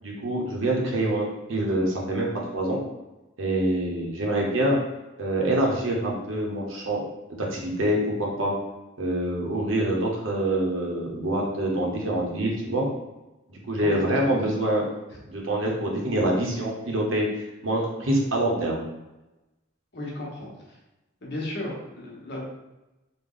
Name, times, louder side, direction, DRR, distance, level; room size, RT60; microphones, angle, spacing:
voice 1, 0.0-2.3 2.5-2.8 3.4-4.8 5.2-7.0 7.4-8.5 9.0-12.9 13.5-14.8 15.3-18.8, right 1 dB, 80° right, -2 dB, 0.9 m, -25 dB
voice 2, 13.8-14.1 15.1-15.2 19.9-20.8 21.2-22.4, left 1 dB, 55° left, -3 dB, 0.9 m, -35 dB
3.4 x 2.2 x 3.7 m, 1.0 s
head